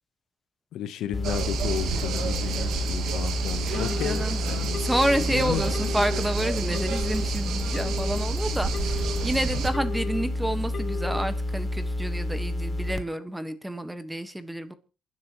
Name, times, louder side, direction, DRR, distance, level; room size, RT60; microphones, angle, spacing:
voice 1, 0.7-4.9 5.1-6.2, left 10 dB, 80° left, 12 dB, 1.0 m, -33 dB
sound 1, 1.1-13.0, left 1 dB, 20° left, 1.2 m, -30 dB
sound 2, 1.2-9.7, right 7 dB, 80° right, 1.9 m, -32 dB
Telephone, 3.7-4.2 4.7-5.2 5.7-6.2 6.7-7.2 7.7-8.2 8.7-9.2 9.7-10.2 10.7-11.2, left 5 dB, 50° left, 2.5 m, -36 dB
voice 2, 3.7-14.7, right 1 dB, 5° right, 10 dB, 1.4 m, -29 dB
27.5 x 10.5 x 3.1 m, 0.34 s
cardioid pair, 90°, 0 cm